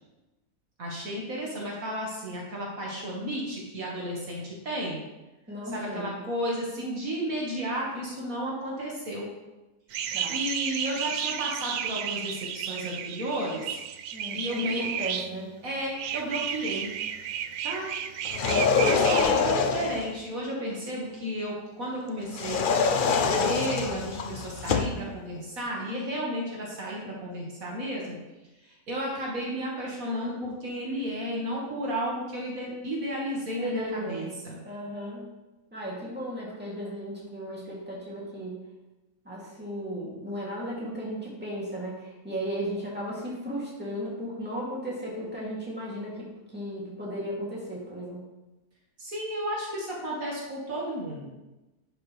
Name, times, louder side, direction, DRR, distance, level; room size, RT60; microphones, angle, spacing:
voice 1, 0.8-5.0 5.7-9.3 10.3-13.8 14.3-14.9 15.6-16.9 17.6-17.9 18.8-22.7 23.0-28.2 28.6-34.6 49.0-51.3, equal, 65° right, -3 dB, 2.2 m, -33 dB
voice 2, 5.5-6.2 10.1-10.4 14.1-15.5 33.6-34.3 34.6-35.3 35.7-38.6 39.2-48.2, equal, 5° right, -6 dB, 2.7 m, -35 dB
sound 1, 9.9-15.3 16.0-19.2, right 9 dB, 90° right, 1.1 m, -33 dB
sound 2, 18.2-20.1 22.3-25.0, left 5 dB, 55° left, 0.6 m, -25 dB
11.0 x 7.8 x 3.3 m, 1.1 s
omnidirectional pair, 1.6 m